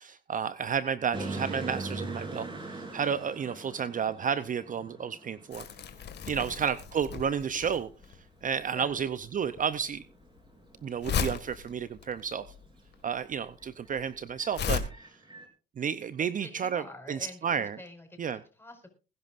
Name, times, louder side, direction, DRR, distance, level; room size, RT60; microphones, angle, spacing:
voice 1, 0.0-5.6 6.3-7.9 8.4-10.0 10.8-12.4 13.0-14.8 15.8-16.8 17.1-17.8 18.2-18.4, right 7 dB, 40° right, 14 dB, 0.6 m, -31 dB
sound 1, 1.1-8.2 8.4-8.7 8.9-9.7 10.1-11.2 11.5-13.0 13.3-15.5, right 2 dB, 25° right, 3.8 m, -42 dB
Crumpling crinkling, 5.5-14.8, left 7 dB, 55° left, 1.9 m, -36 dB
voice 2, 6.2-6.5 8.7-9.0 16.2-18.9, left 2 dB, 10° left, 4 dB, 5.0 m, -48 dB
21.0 x 11.0 x 2.5 m, 0.34 s
cardioid pair, 90°, 20 cm